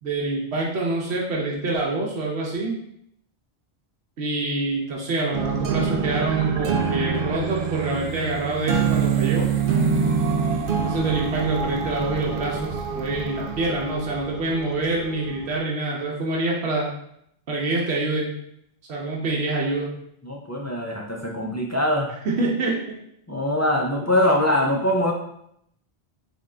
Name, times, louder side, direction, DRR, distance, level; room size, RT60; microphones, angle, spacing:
voice 1, 0.0-2.8 4.2-9.5 10.8-16.9 17.5-18.3 18.9-19.9 22.2-23.0, right 2 dB, 80° right, -2 dB, 1.0 m, -26 dB
sound 1, 5.3-15.5, right 6 dB, 65° right, 0.7 m, -25 dB
voice 2, 20.2-22.1 23.3-25.1, left 1 dB, 25° left, -2 dB, 0.4 m, -22 dB
3.6 x 3.6 x 3.2 m, 0.74 s
omnidirectional pair, 1.1 m